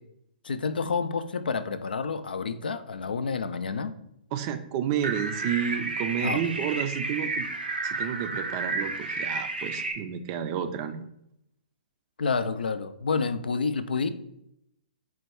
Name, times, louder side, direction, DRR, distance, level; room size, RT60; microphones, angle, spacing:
voice 1, 0.4-3.9 6.2-6.5 12.2-14.1, left 5 dB, 75° left, 12 dB, 0.4 m, -29 dB
voice 2, 4.3-7.5 7.8-11.0, right 9 dB, 35° right, 9 dB, 0.4 m, -31 dB
sound 1, 5.0-9.9, right 3 dB, 85° right, 0.6 m, -31 dB
4.4 x 2.2 x 4.4 m, 0.78 s
figure-of-eight pair, 125°, 5 cm